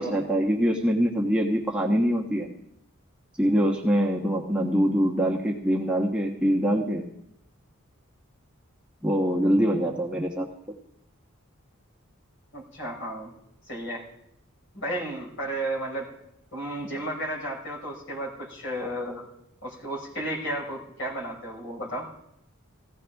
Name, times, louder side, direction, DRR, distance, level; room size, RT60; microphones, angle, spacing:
voice 1, 0.0-2.5 3.4-7.0 9.0-10.5, equal, 5° right, -2 dB, 1.1 m, -24 dB
voice 2, 12.5-13.3 13.7-14.0 14.7-16.1 16.5-19.3 19.6-22.1, right 1 dB, 60° left, -4 dB, 5.2 m, -33 dB
18.5 x 15.5 x 3.5 m, 0.82 s
head